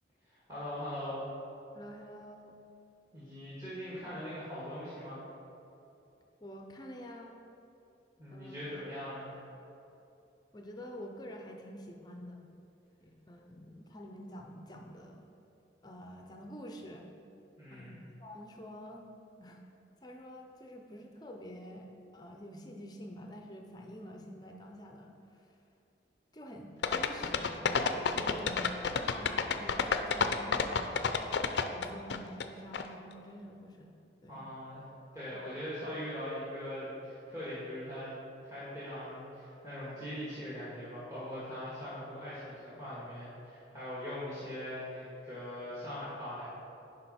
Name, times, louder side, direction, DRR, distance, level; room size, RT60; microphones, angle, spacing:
voice 1, 0.3-1.2 3.1-5.2 8.2-9.3 17.6-18.0 34.3-34.8 35.1-38.2 38.4-46.5, equal, 15° right, -11 dB, 1.8 m, -41 dB
voice 2, 1.7-2.5 6.4-7.3 8.3-8.6 10.5-12.5 13.0-15.3 15.8-17.1 17.7-19.0 19.4-19.6 20.0-21.9 22.1-25.4 26.3-28.9 29.1-31.0 31.7-33.9 34.2-34.5 35.3-35.4, equal, 20° left, 2 dB, 0.6 m, -48 dB
sound 1, 26.8-32.4 32.7-32.8, left 5 dB, 70° left, 0.4 m, -29 dB
10.0 x 5.2 x 4.2 m, 2.8 s
head